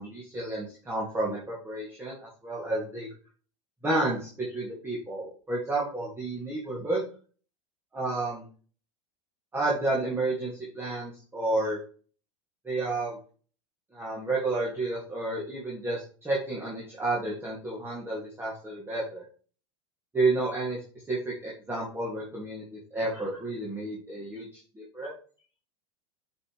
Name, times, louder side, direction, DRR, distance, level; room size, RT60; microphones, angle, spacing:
voice 1, 0.0-2.2 2.4-3.1 3.8-7.0 7.9-8.4 9.5-11.8 12.6-13.2 13.9-19.2 20.1-25.1, right 2 dB, 15° right, -4 dB, 2.5 m, -31 dB
9.4 x 5.4 x 3.3 m, 0.41 s
hypercardioid pair, 95°, 16 cm